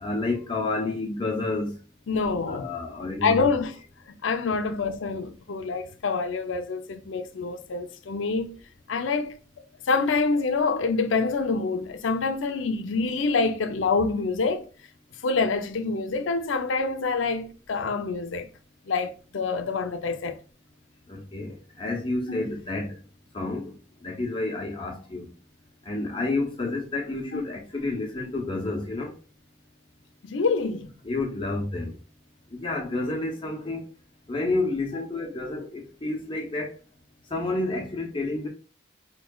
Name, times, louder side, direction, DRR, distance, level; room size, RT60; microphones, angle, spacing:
voice 1, 0.0-1.8 2.5-3.5 21.1-23.0 23.3-23.7 24.0-25.3 25.8-29.1 31.0-31.9 32.5-33.8 34.3-36.7 37.3-38.5, left 2 dB, 25° left, 0.7 m, -30 dB
voice 2, 2.1-2.7 3.2-3.7 4.1-8.5 8.9-9.4 9.9-14.7 15.2-18.5 18.9-20.4 22.3-22.5 27.3-27.4 30.2-30.9, left 4 dB, 85° left, 0.5 m, -26 dB
4.5 x 3.1 x 2.3 m
head